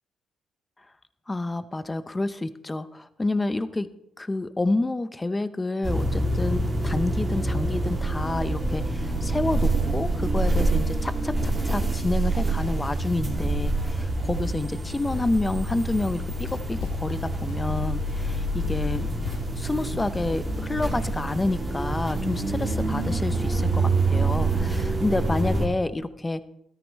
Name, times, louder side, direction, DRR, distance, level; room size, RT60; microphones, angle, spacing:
voice 1, 1.3-3.9 4.2-19.1 19.6-26.4, left 2 dB, 20° left, 14 dB, 0.6 m, -29 dB
sound 1, 5.8-25.7, right 2 dB, 25° right, 2.2 m, -26 dB
Run, 16.0-21.2, left 7 dB, 90° left, 0.7 m, -39 dB
13.5 x 13.0 x 3.1 m, 0.81 s
cardioid pair, 90°, 0 cm